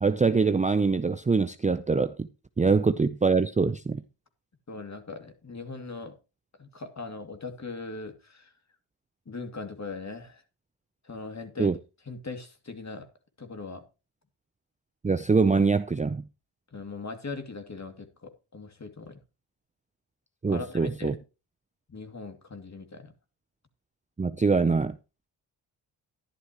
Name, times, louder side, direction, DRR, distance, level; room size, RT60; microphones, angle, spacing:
voice 1, 0.0-2.3 2.6-4.0 11.6-11.7 15.0-16.2 20.4-21.1 24.2-25.0, right 4 dB, 15° right, 0.6 m, -24 dB
voice 2, 4.7-6.1 6.6-8.5 9.3-10.4 11.0-11.7 12.1-13.1 13.4-13.8 16.7-19.2 20.5-21.2 21.9-23.1, left 3 dB, 35° left, 2.5 m, -40 dB
11.5 x 11.5 x 3.0 m
supercardioid pair, 50°, 50 cm